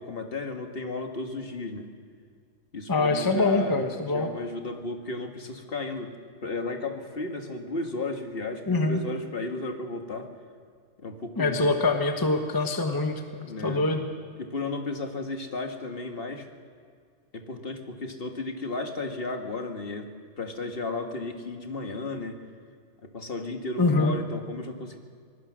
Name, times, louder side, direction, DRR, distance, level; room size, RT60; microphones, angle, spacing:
voice 1, 0.0-1.9 2.7-3.8 4.1-10.3 11.0-11.8 13.4-13.8 14.4-16.5 17.3-20.1 20.4-22.4 23.0-25.0, left 3 dB, 45° left, 4 dB, 1.9 m, -34 dB
voice 2, 2.9-4.3 8.7-9.0 11.4-14.0 23.8-24.1, left 3 dB, 15° left, 5 dB, 1.1 m, -24 dB
25.5 x 19.5 x 6.3 m, 2.1 s
omnidirectional pair, 1.3 m